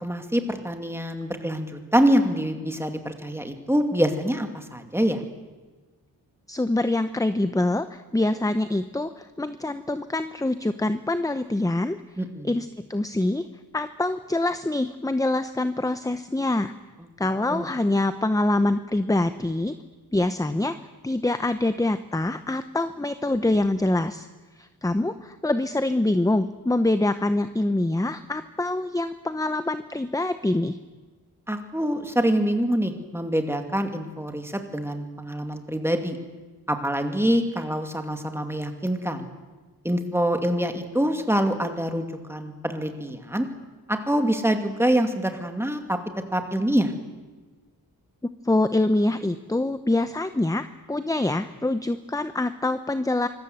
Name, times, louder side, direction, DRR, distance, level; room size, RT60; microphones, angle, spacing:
voice 1, 0.0-5.2 12.2-12.5 17.5-17.7 31.5-36.2 36.7-39.3 39.8-43.5 43.9-46.0 46.3-46.9, equal, 5° right, 5 dB, 2.4 m, -25 dB
voice 2, 6.5-12.0 12.4-13.5 13.7-16.7 17.2-19.8 20.1-20.8 21.0-24.3 24.6-30.8 48.4-53.3, left 2 dB, 10° left, 11 dB, 0.7 m, -25 dB
25.5 x 20.5 x 7.9 m, 1.3 s
wide cardioid pair, 120°, 38 cm